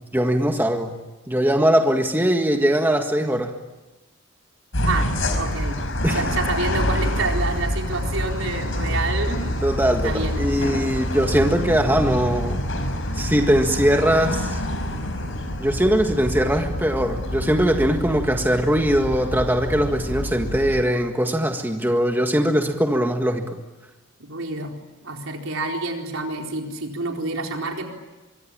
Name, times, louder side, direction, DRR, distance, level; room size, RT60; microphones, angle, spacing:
voice 1, 0.1-0.9 1.3-3.6 6.0-6.2 9.6-12.7 13.1-14.6 15.6-23.6, equal, 10° right, 4 dB, 1.7 m, -21 dB
sound 1, 4.7-20.8, left 1 dB, 65° left, 5.0 m, -26 dB
voice 2, 4.8-5.8 6.1-9.4 10.0-10.5 24.3-24.7 25.0-27.9, right 3 dB, 70° right, 2 dB, 4.2 m, -28 dB
25.0 x 23.5 x 8.8 m, 1.1 s
head